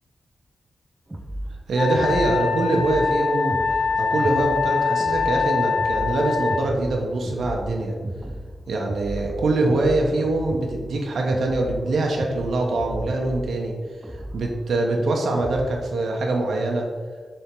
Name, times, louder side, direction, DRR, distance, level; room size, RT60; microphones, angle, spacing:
sound 1, 1.1-15.9, equal, 15° right, 0.6 m, -35 dB
voice 1, 1.7-7.9 8.7-13.8 14.3-16.9, right 2 dB, 75° right, 0 dB, 0.9 m, -23 dB
Wind instrument woodwind instrument, 1.8-6.7, left 5 dB, 70° left, 0.7 m, -23 dB
6.7 x 3.6 x 4.6 m, 1.5 s
wide cardioid pair, 145°, 0 cm